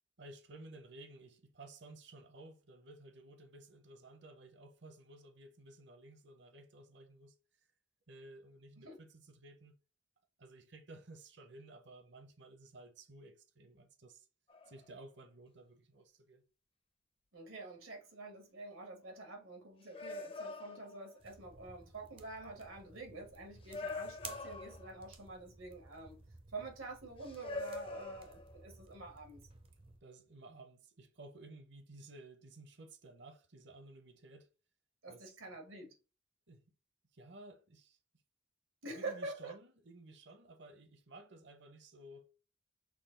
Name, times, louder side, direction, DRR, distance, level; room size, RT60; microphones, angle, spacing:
voice 1, 0.2-7.4 8.1-9.8 10.4-14.3 14.7-16.4 30.0-34.5 35.1-35.4 36.5-36.6 37.1-38.0 38.9-42.3, right 2 dB, 55° right, 0.7 m, -55 dB
sound 1, 14.5-14.9 19.1-19.2 19.9-21.3 22.2-22.3 23.6-25.1 27.2-28.6, left 3 dB, 25° left, 0.5 m, -45 dB
voice 2, 17.3-26.2 26.5-29.4 35.0-35.9 38.8-39.5, right 2 dB, 90° right, 1.7 m, -47 dB
sound 2, 21.2-30.0, right 4 dB, 25° right, 0.5 m, -56 dB
6.0 x 2.3 x 3.7 m
head